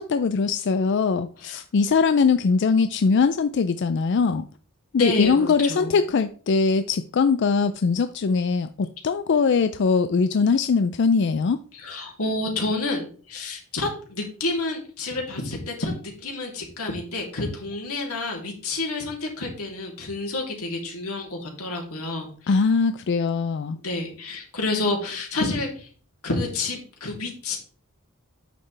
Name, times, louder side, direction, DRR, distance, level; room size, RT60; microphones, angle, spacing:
voice 1, 0.0-4.5 4.9-11.6 22.5-23.8, left 5 dB, 55° left, 0.4 m, -21 dB
voice 2, 4.9-5.9 11.8-22.6 23.8-25.9 26.2-27.6, left 2 dB, 90° left, 2.9 m, -29 dB
9.1 x 6.6 x 3.3 m
head